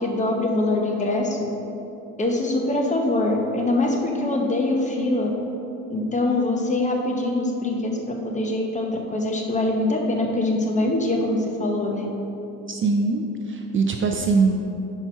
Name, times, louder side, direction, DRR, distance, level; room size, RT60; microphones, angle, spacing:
voice 1, 0.0-1.4 2.2-5.3 5.9-8.0 8.2-12.1, left 2 dB, 20° left, 1 dB, 0.8 m, -23 dB
voice 2, 12.7-14.6, right 4 dB, 35° right, 4 dB, 0.4 m, -22 dB
5.6 x 4.6 x 5.4 m, 2.9 s
cardioid pair, 120°, 35 cm